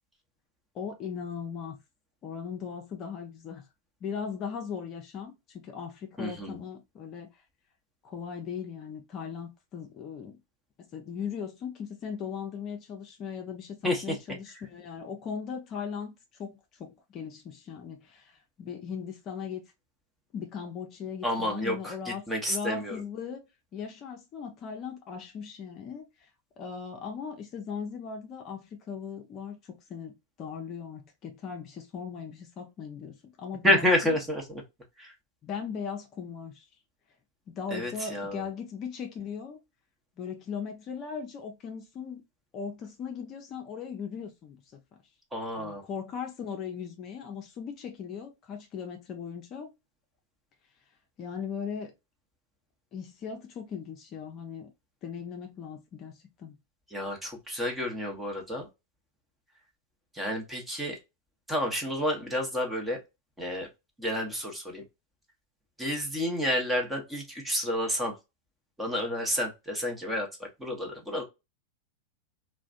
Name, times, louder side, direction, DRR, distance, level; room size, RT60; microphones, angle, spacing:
voice 1, 0.7-1.8 2.2-3.6 4.0-7.4 8.0-10.4 10.9-19.7 20.3-26.3 26.6-34.2 35.4-36.7 37.5-39.6 40.2-42.2 42.5-45.0 45.6-49.7 51.2-51.9 52.9-54.7 55.0-56.5, left 6 dB, 40° left, 0.6 m, -38 dB
voice 2, 6.2-6.6 13.8-14.2 21.2-23.0 33.6-34.6 35.0-35.1 37.7-38.5 45.3-45.8 56.9-58.7 60.1-61.0 61.5-63.0 63.4-63.7 64.0-64.8 65.8-68.2 68.8-71.2, left 1 dB, 10° right, 0.9 m, -30 dB
2.4 x 2.1 x 2.4 m
hypercardioid pair, 100°, 0 cm